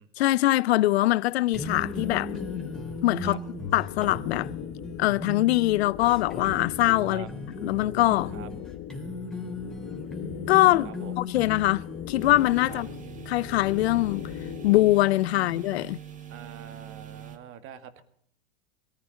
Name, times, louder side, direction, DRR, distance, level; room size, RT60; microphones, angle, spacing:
voice 1, 0.2-2.4 3.0-3.4 3.7-4.5 5.0-7.3 7.6-8.3 10.5-10.9 11.2-12.9 13.3-14.2 14.6-16.0, left 17 dB, 75° left, 0.6 m, -23 dB
sound 1, 1.5-14.9, left 11 dB, 45° left, 1.6 m, -40 dB
sound 2, 1.5-14.1, left 2 dB, ahead, 2.9 m, -38 dB
voice 2, 10.8-11.2 12.7-12.8 15.3-15.6 16.3-18.0, right 9 dB, 40° right, 2.0 m, -44 dB
sound 3, 12.2-17.4, right 8 dB, 25° right, 1.8 m, -43 dB
18.0 x 14.5 x 5.2 m
hypercardioid pair, 115°, 32 cm